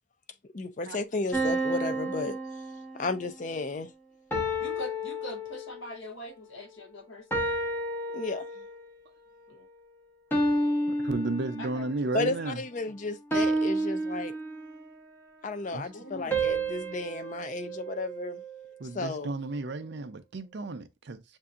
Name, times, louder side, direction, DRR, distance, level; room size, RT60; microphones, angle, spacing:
voice 1, 0.5-2.4 2.9-3.9 8.1-8.4 12.1-14.3 15.4-18.4 18.9-19.3, left 3 dB, 35° left, 0.4 m, -33 dB
sound 1, 1.3-3.3 4.3-6.0 7.3-8.9 10.3-12.0 13.3-14.9 16.3-18.6, right 1 dB, 10° left, 0.8 m, -31 dB
voice 2, 4.6-7.4 9.5-9.7 11.6-12.3 15.7-16.3, equal, 65° left, 0.9 m, -43 dB
voice 3, 10.9-12.6 15.7-15.8 18.8-21.2, right 2 dB, 55° right, 0.5 m, -33 dB
6.7 x 2.7 x 2.4 m
head